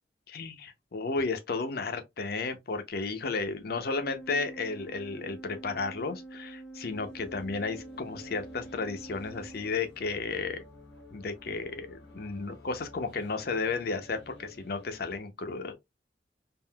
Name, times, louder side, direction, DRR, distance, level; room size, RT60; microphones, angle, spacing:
voice 1, 0.3-10.6 11.1-15.7, left 4 dB, 55° left, 0.6 m, -33 dB
Organ, 3.8-10.3, right 2 dB, 5° right, 0.6 m, -47 dB
sound 1, 6.9-15.2, left 3 dB, 90° left, 1.4 m, -52 dB
3.6 x 2.5 x 2.2 m
head